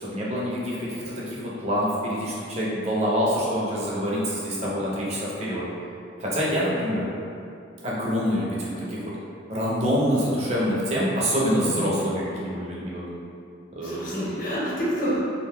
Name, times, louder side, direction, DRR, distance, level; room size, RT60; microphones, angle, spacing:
voice 1, 0.0-5.7 6.2-7.1 7.8-9.1 9.5-13.1 13.7-14.3, equal, 35° right, -6 dB, 0.6 m, -26 dB
voice 2, 11.6-12.0 13.8-15.2, equal, 45° left, -7 dB, 0.9 m, -29 dB
2.5 x 2.2 x 3.4 m, 2.6 s
head